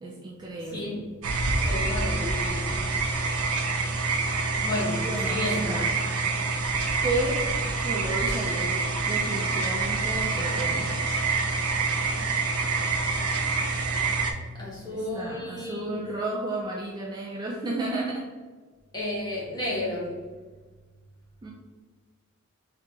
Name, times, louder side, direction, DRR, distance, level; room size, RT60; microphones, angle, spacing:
voice 1, 0.0-0.9 5.0-5.9 7.0-7.4 7.8-10.9 14.9-18.2 21.4-21.5, right 2 dB, 20° right, -2 dB, 0.3 m, -32 dB
voice 2, 0.7-1.0 1.6-2.7 4.6-5.8 14.5-16.0 18.9-20.2, left 1 dB, 20° left, -5 dB, 1.0 m, -32 dB
sound 1, 1.2-14.3, right 4 dB, 80° right, 0.5 m, -27 dB
3.0 x 2.8 x 3.5 m, 1.4 s
head